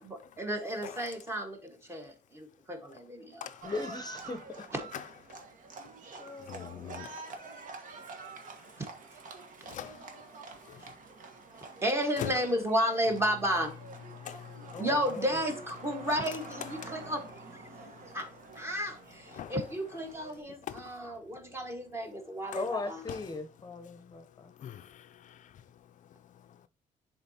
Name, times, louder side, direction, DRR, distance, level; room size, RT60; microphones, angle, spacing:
voice 1, 0.4-3.5 8.8-8.9 11.8-13.7 14.8-17.2 17.5-17.6 18.1-18.3 18.5-23.0, equal, 20° right, 1.5 m, -32 dB
voice 2, 3.6-4.9 6.2-7.5 14.7-15.4 22.5-24.5, left 3 dB, 30° left, 0.7 m, -39 dB
Livestock farm animals working animals, 3.6-20.4, right 4 dB, 65° right, 1.3 m, -48 dB
voice 3, 6.5-7.3 9.7-10.0 10.7-10.8 12.2-12.3 14.2-14.8 16.8-16.9 19.3-19.5 20.7-20.8 24.6-25.4, left 10 dB, 65° left, 0.4 m, -42 dB
10.5 x 3.8 x 2.8 m
cardioid pair, 130°, 14 cm